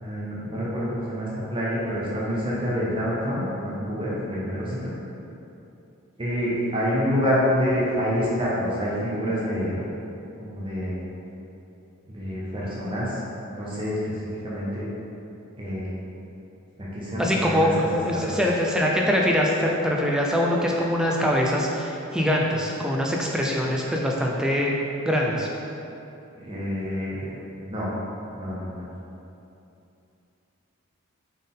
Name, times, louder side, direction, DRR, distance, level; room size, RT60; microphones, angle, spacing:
voice 1, 0.0-5.0 6.2-9.9 10.4-11.1 12.1-13.2 13.5-14.2 14.4-14.8 15.6-15.9 16.8-17.7 18.3-18.4 26.4-27.3 27.6-28.0 28.4-28.9, equal, 25° right, -7 dB, 0.7 m, -27 dB
voice 2, 17.2-24.7 25.1-25.5, equal, 5° right, -2 dB, 0.3 m, -23 dB
4.2 x 3.5 x 3.6 m, 2.8 s
head